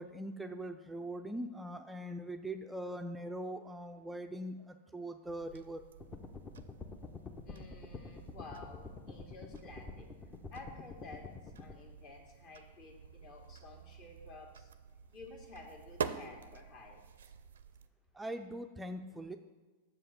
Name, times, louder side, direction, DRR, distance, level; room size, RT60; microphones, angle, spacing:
voice 1, 0.0-5.9 18.1-19.4, right 1 dB, 5° right, 6 dB, 0.4 m, -42 dB
sound 1, 5.2-17.9, right 7 dB, 75° right, 0.5 m, -48 dB
sound 2, 6.0-11.7, left 4 dB, 25° left, 0.7 m, -48 dB
voice 2, 7.4-10.1 10.5-11.2 11.6-14.7 15.1-17.3, left 3 dB, 45° left, 1 dB, 2.0 m, -52 dB
6.9 x 5.6 x 6.7 m, 1.3 s
hypercardioid pair, 100°, 0 cm